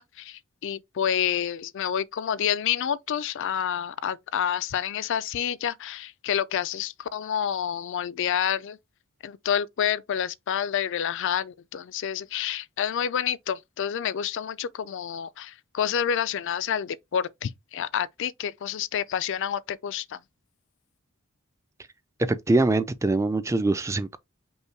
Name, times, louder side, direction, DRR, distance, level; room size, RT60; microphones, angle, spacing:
voice 1, 0.0-8.8 9.2-20.2, left 8 dB, 60° left, 0.4 m, -28 dB
voice 2, 22.2-24.2, right 2 dB, 15° right, 0.3 m, -23 dB
5.4 x 2.2 x 4.4 m
head